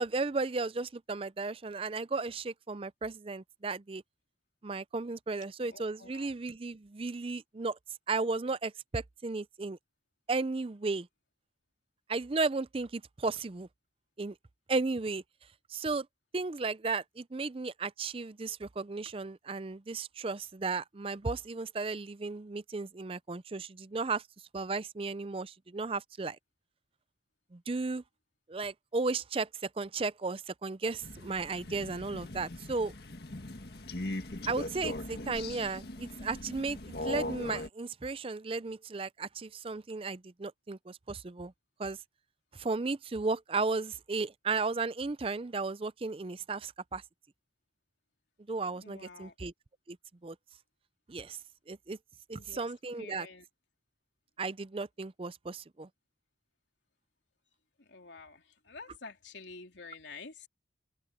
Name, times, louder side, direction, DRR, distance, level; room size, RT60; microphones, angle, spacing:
voice 1, 0.0-4.0 4.6-7.8 8.1-9.8 10.3-11.1 12.1-13.7 14.2-14.3 14.7-15.2 15.7-16.1 16.3-24.2 24.5-26.4 27.5-28.0 28.5-32.9 34.5-41.5 41.8-42.0 42.5-47.0 48.5-49.5 49.9-50.0 50.2-50.4 51.1-51.4 51.7-52.0 52.3-53.3 54.4-55.9, right 3 dB, 30° right, 0.5 m, -34 dB
voice 2, 5.6-6.3 48.7-49.3 52.3-52.7 53.0-53.5 57.8-60.5, left 4 dB, 80° left, 3.1 m, -49 dB
Crow, 31.0-37.7, left 1 dB, 60° left, 1.8 m, -40 dB
head